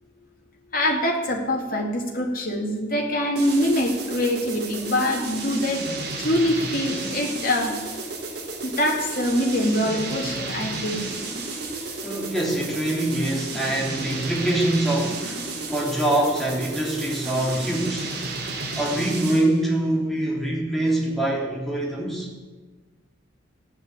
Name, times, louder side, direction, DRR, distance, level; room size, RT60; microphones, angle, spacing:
voice 1, 0.7-7.8 8.6-11.0, left 1 dB, 45° left, 1 dB, 2.9 m, -24 dB
sound 1, 3.4-19.6, right 3 dB, 55° right, 3.4 m, -32 dB
voice 2, 12.0-18.1 18.7-22.3, right 1 dB, ahead, -3 dB, 3.2 m, -24 dB
15.0 x 10.5 x 8.3 m, 1.3 s
head